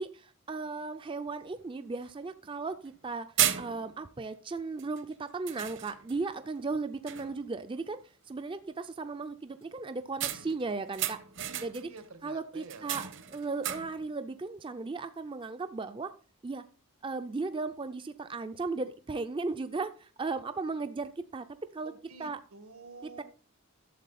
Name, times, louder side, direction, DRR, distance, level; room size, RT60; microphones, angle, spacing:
voice 1, 0.0-3.3 3.6-8.0 8.3-11.2 11.6-11.9 12.2-16.1 16.4-16.6 17.0-21.5 21.7-21.9 22.2-22.4 23.0-23.2, right 3 dB, 25° right, 10 dB, 0.4 m, -36 dB
sound 1, 1.5-1.6 2.0-2.1 2.9-3.0 3.4-4.1 4.8-5.0 5.5-6.2 6.7-6.8 7.1-7.5 10.2-12.0 12.6-14.1, right 11 dB, 55° right, 1.0 m, -34 dB
voice 2, 11.5-12.9 21.8-23.2, right 3 dB, 80° right, 9 dB, 1.6 m, -49 dB
12.0 x 7.5 x 4.1 m, 0.40 s
head